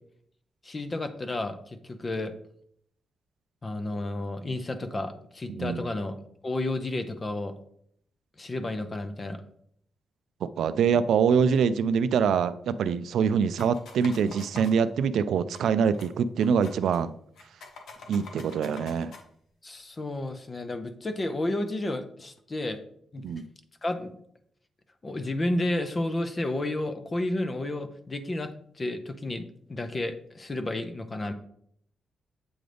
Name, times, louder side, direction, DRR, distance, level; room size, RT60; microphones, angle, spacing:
voice 1, 0.6-2.3 3.6-6.2 6.4-7.5 8.4-9.4 19.6-22.8 23.1-23.2 23.8-24.1 25.0-28.5 28.8-31.3, left 2 dB, 25° left, 8 dB, 0.5 m, -31 dB
voice 2, 5.5-5.8 10.4-17.1 18.1-19.1 23.2-23.4, right 6 dB, 80° right, 14 dB, 0.3 m, -24 dB
sound 1, 13.6-14.7 15.6-15.7 15.9-16.1 16.4-17.0 17.4-19.2, left 4 dB, 80° left, 1.0 m, -45 dB
7.7 x 3.8 x 3.3 m, 0.67 s
wide cardioid pair, 150°, 0 cm